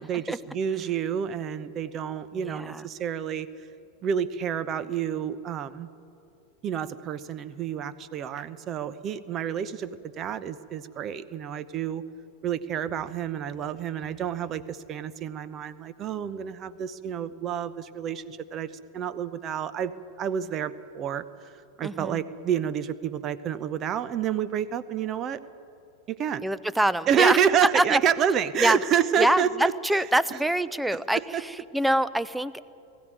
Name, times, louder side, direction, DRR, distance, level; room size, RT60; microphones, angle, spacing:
voice 1, 0.0-3.5 4.0-5.9 6.6-12.0 12.4-19.9 20.2-21.2 21.8-25.4 26.1-26.5 27.1-30.0 30.9-31.4, right 8 dB, 30° right, 15 dB, 0.8 m, -29 dB
voice 2, 2.3-2.8 21.8-22.2 26.4-27.4 27.7-28.0 28.6-28.8 29.2-32.6, right 1 dB, 5° right, 17 dB, 0.6 m, -25 dB
20.0 x 15.0 x 9.5 m, 2.6 s
figure-of-eight pair, 90°, 0 cm